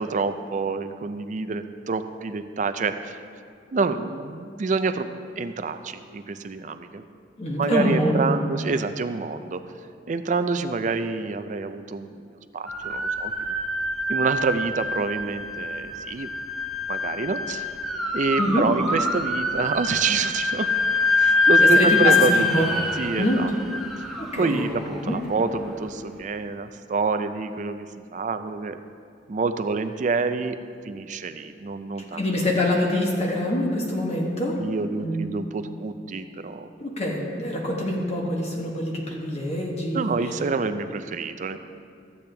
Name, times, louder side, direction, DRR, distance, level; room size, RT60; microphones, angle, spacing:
voice 1, 0.0-3.2 3.7-5.1 5.4-7.0 7.6-9.7 10.1-13.3 14.1-16.3 16.9-17.7 18.1-20.7 21.2-23.5 24.0-24.1 24.3-27.9 28.1-28.8 29.3-30.6 30.8-32.2 34.6-36.7 39.9-41.6, right 4 dB, 45° right, 10 dB, 0.4 m, -27 dB
voice 2, 7.4-8.3 18.4-18.6 21.6-22.7 23.1-23.4 24.2-24.7 25.0-25.2 32.1-34.6 34.9-35.3 36.8-40.2, left 1 dB, 35° left, -1 dB, 1.1 m, -25 dB
sound 1, 12.7-25.7, left 2 dB, ahead, 0.8 m, -25 dB
13.5 x 8.5 x 3.3 m, 2.3 s
head